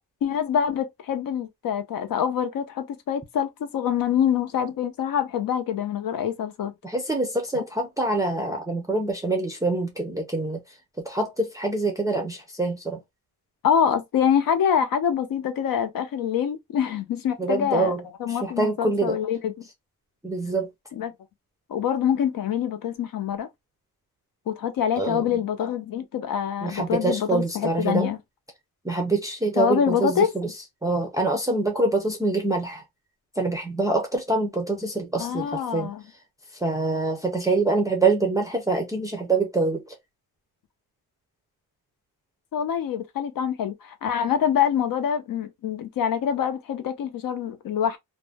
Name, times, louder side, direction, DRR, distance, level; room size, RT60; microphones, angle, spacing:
voice 1, 0.2-6.7 7.5-7.6 13.6-17.9 18.2-19.5 20.9-21.1 21.7-23.5 24.5-28.2 29.6-30.3 35.2-36.0 42.5-48.0, left 8 dB, 65° left, 0.7 m, -25 dB
voice 2, 6.8-10.6 11.0-13.0 17.4-18.0 18.3-19.2 20.2-20.7 25.0-25.3 26.6-28.1 28.8-30.5 30.8-32.8 33.4-35.9 36.6-39.9, right 3 dB, 10° right, 0.5 m, -25 dB
2.5 x 2.1 x 3.3 m
wide cardioid pair, 150°, 37 cm